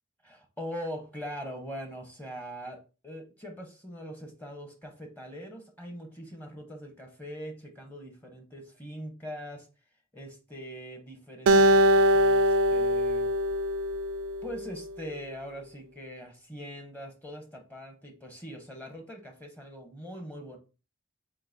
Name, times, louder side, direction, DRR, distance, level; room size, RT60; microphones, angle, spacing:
voice 1, 0.2-9.7 10.1-13.3 14.4-20.6, equal, 10° left, 3 dB, 0.7 m, -42 dB
Acoustic guitar, 11.5-14.8, equal, 80° right, 0.3 m, -23 dB
7.6 x 2.6 x 2.6 m, 0.33 s
head